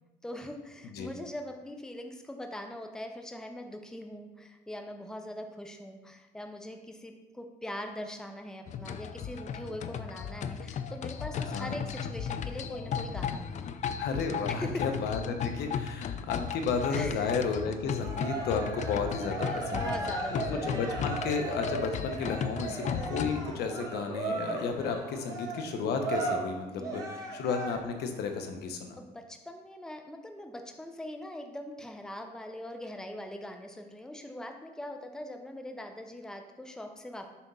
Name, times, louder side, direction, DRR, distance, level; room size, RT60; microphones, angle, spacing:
voice 1, 0.2-13.8 14.5-14.9 16.9-17.4 19.4-20.8 26.7-27.4 29.0-37.3, left 1 dB, 5° left, 5 dB, 0.7 m, -42 dB
sound 1, 8.7-23.5, left 7 dB, 45° left, 0.4 m, -35 dB
voice 2, 11.4-11.8 14.0-19.9 20.3-28.9, left 5 dB, 75° left, 5 dB, 0.9 m, -33 dB
Cheering, 18.0-28.0, right 2 dB, 20° right, 1.6 m, -36 dB
7.0 x 3.6 x 5.4 m, 1.1 s
cardioid pair, 110°, 17 cm